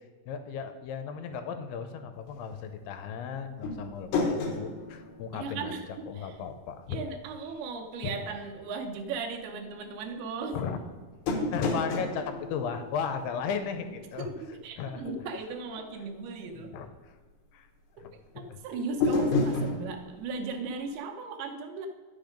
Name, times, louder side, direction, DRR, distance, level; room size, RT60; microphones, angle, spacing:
voice 1, 0.3-5.8 6.1-7.0 8.0-8.1 10.5-10.8 11.5-14.3 14.8-15.1 16.6-17.2 17.5-17.7 18.0-18.6 19.6-19.9, left 6 dB, 80° left, 8 dB, 2.6 m, -36 dB
sound 1, 3.6-6.3 6.5-6.6 11.3-13.8 19.0-19.9, left 3 dB, 65° left, 2.1 m, -30 dB
voice 2, 5.3-6.4 6.9-10.6 14.2-14.3 14.6-16.7 18.4-21.9, right 4 dB, 80° right, 3 dB, 2.7 m, -37 dB
10.5 x 6.3 x 5.1 m, 1.4 s
omnidirectional pair, 4.7 m